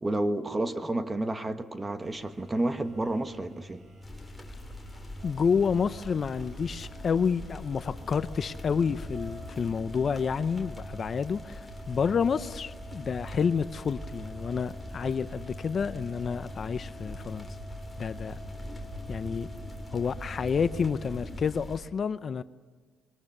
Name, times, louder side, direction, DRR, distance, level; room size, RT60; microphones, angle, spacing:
voice 1, 0.0-3.8, right 2 dB, 20° right, 9 dB, 1.4 m, -30 dB
sound 1, 2.0-21.6, right 1 dB, 45° right, 7.0 m, -46 dB
sound 2, 4.0-21.8, left 1 dB, 10° left, 3.2 m, -43 dB
voice 2, 5.2-17.5 18.0-18.4 19.1-19.5 19.9-22.4, left 6 dB, 45° left, 13 dB, 0.7 m, -29 dB
26.5 x 22.5 x 6.7 m, 1.4 s
cardioid pair, 100°, 0 cm